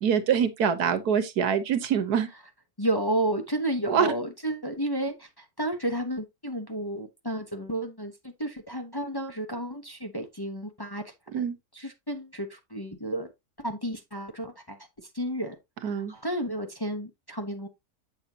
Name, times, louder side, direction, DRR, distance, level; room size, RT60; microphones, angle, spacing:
voice 1, 0.0-2.3 3.9-4.1 11.3-11.5 15.8-16.1, right 7 dB, 80° right, 1.6 m, -25 dB
voice 2, 2.8-11.4 11.7-13.3 13.6-17.7, right 1 dB, 20° left, 0.9 m, -32 dB
8.0 x 7.2 x 2.8 m
omnidirectional pair, 1.6 m